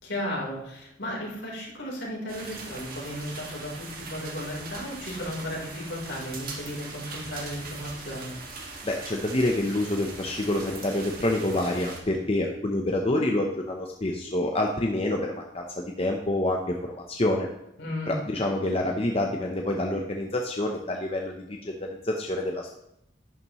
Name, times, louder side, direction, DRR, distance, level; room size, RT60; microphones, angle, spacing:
voice 1, 0.0-8.4 17.8-18.2, left 1 dB, 75° left, -4 dB, 3.9 m, -35 dB
sound 1, 2.3-12.0, right 3 dB, 50° right, 1.8 m, -41 dB
voice 2, 8.8-15.7 16.0-17.5 18.1-22.7, left 1 dB, 30° left, 1 dB, 0.8 m, -27 dB
11.0 x 9.9 x 3.1 m, 0.81 s
head